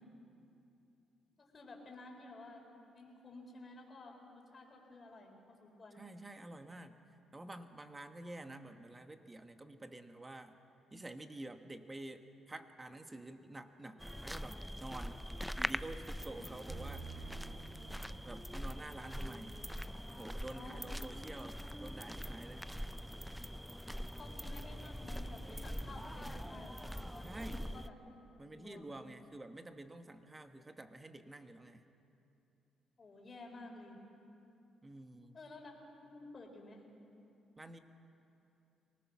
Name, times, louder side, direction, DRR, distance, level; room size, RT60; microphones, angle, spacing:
voice 1, 1.4-2.6 2.9-6.0 16.4-16.5 20.5-20.8 24.0-27.9 28.5-29.0 33.0-34.0 35.3-35.7 36.0-36.8, left 2 dB, 35° left, 1 dB, 4.1 m, -53 dB
voice 2, 6.0-7.0 7.3-10.6 10.9-15.2 15.6-17.1 18.2-19.6 20.1-22.6 27.2-27.7 28.4-31.8 34.8-35.4 37.6-37.8, right 2 dB, 20° right, 8 dB, 1.2 m, -49 dB
sound 1, 14.0-27.9, equal, ahead, 0.4 m, -43 dB
sound 2, 16.7-20.4, right 6 dB, 45° right, 0.9 m, -53 dB
23.5 x 19.0 x 6.0 m, 2.8 s
cardioid pair, 90°, 0 cm